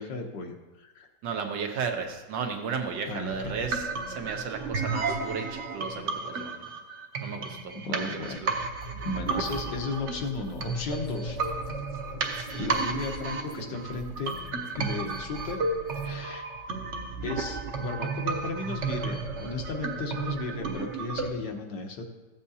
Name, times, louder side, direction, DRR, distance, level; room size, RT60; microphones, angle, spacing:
voice 1, 0.0-1.1 3.1-3.6 7.8-8.6 9.0-11.4 12.6-14.3 14.8-15.6 16.0-16.5 17.2-22.0, left 3 dB, 80° left, 3 dB, 1.7 m, -35 dB
voice 2, 1.2-6.7 7.2-8.5, right 5 dB, 90° right, 3 dB, 1.7 m, -34 dB
sound 1, 3.3-21.3, right 4 dB, 55° right, 0.9 m, -33 dB
sound 2, 8.8-16.2, left 3 dB, 55° left, 1.0 m, -45 dB
14.5 x 7.5 x 2.8 m, 1.1 s
omnidirectional pair, 1.9 m